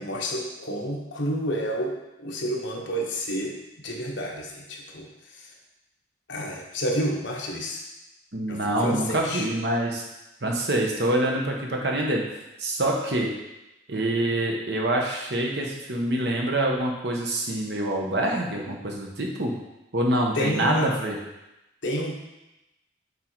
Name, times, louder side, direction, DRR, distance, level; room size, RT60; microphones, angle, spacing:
voice 1, 0.0-3.6 3.8-5.1 5.3-5.5 6.3-7.8 8.5-9.5 20.3-20.9 21.8-22.2, equal, 75° left, -1 dB, 1.2 m, -29 dB
voice 2, 8.3-10.1 10.4-12.2 12.6-13.3 13.9-19.5 19.9-21.2, right 1 dB, 60° right, 0 dB, 1.1 m, -26 dB
7.8 x 3.8 x 4.6 m, 0.95 s
head